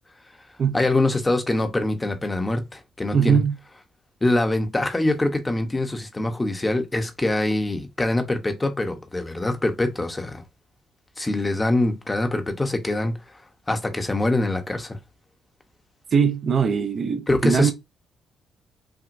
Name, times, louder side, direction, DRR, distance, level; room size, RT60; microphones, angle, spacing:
voice 1, 0.7-3.4 4.2-10.4 11.2-13.1 13.7-15.0 17.3-17.7, left 2 dB, 20° left, 0.9 m, -24 dB
voice 2, 3.1-3.5 16.1-17.7, right 6 dB, 55° right, 0.7 m, -21 dB
5.9 x 2.1 x 2.6 m
cardioid pair, 90°, 0 cm